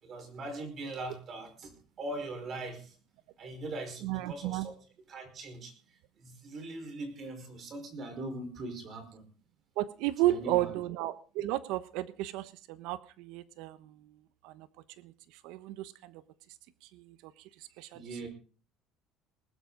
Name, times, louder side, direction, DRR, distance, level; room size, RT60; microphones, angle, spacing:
voice 1, 0.0-3.0 3.4-4.8 5.1-9.2 10.2-10.7 17.9-18.3, right 2 dB, 40° right, 6 dB, 4.9 m, -41 dB
voice 2, 4.0-4.7 9.8-14.1 14.4-14.7 15.0-15.1 15.4-16.2 16.9-17.3 17.8-18.0, right 15 dB, 80° right, 15 dB, 1.1 m, -33 dB
19.5 x 12.5 x 4.0 m, 0.37 s
cardioid pair, 125°, 0 cm